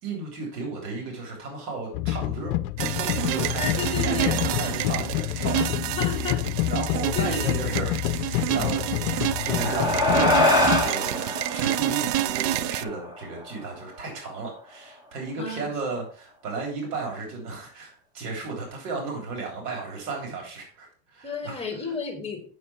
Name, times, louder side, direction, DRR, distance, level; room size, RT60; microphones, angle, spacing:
voice 1, 0.0-2.6 3.0-5.9 6.7-10.5 10.8-21.6, right 4 dB, 70° right, 0 dB, 3.6 m, -34 dB
sound 1, 1.9-10.9, left 14 dB, 55° left, 0.7 m, -28 dB
sound 2, 2.8-12.8, right 13 dB, 45° right, 0.5 m, -29 dB
voice 2, 3.5-4.3 4.6-4.7 5.5-5.6 6.0-6.4 7.1-7.7 8.5-8.8 15.4-15.7 21.2-22.4, left 3 dB, 10° left, 4 dB, 2.3 m, -32 dB
sound 3, 9.1-13.8, left 1 dB, 10° right, 1.7 m, -25 dB
7.8 x 6.6 x 4.3 m, 0.43 s
hypercardioid pair, 115°, 49 cm